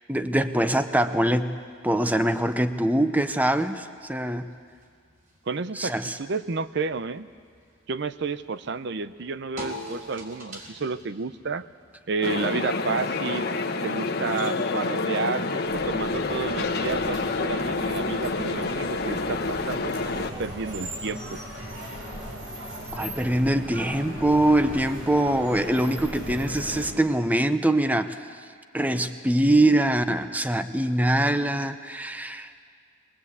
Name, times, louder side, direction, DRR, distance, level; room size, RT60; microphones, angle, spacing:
voice 1, 0.1-1.6 1.8-4.5 5.8-6.2 22.9-28.1 28.7-32.5, right 1 dB, 10° right, 10 dB, 0.7 m, -23 dB
tire percussion, 0.7-14.3, equal, 45° right, 3.7 m, -47 dB
voice 2, 5.5-7.3 7.9-11.6 12.1-13.5 13.8-21.4, right 4 dB, 60° right, 13 dB, 0.6 m, -31 dB
sound 1, 12.2-20.3, left 3 dB, 55° left, 1.1 m, -28 dB
sound 2, 15.6-26.9, equal, 75° right, 5.5 m, -38 dB
21.5 x 20.0 x 8.3 m, 2.1 s
head